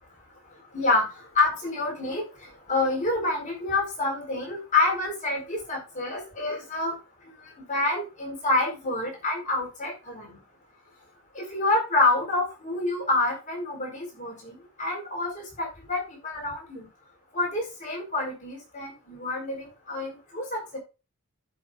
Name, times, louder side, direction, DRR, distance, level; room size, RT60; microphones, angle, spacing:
voice 1, 0.7-1.1 1.3-2.2 2.7-6.9 7.7-10.4 11.3-16.9 17.3-20.8, left 2 dB, 35° left, -1 dB, 4.5 m, -27 dB
15.0 x 6.2 x 2.4 m, 0.28 s
head